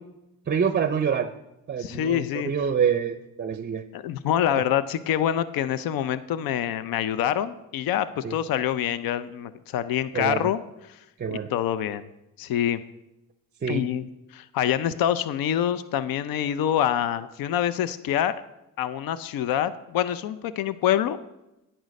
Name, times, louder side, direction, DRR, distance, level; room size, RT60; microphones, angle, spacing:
voice 1, 0.5-1.3 1.7-3.8 8.2-8.4 10.1-10.5 11.2-11.5 13.6-13.9, right 7 dB, 30° right, 11 dB, 0.5 m, -26 dB
voice 2, 1.8-2.5 3.9-10.6 11.3-12.1 12.4-12.8 13.7-14.1 14.3-18.3 18.8-21.2, left 10 dB, 75° left, 15 dB, 0.6 m, -26 dB
10.5 x 9.0 x 5.2 m, 0.94 s
cardioid pair, 105°, 35 cm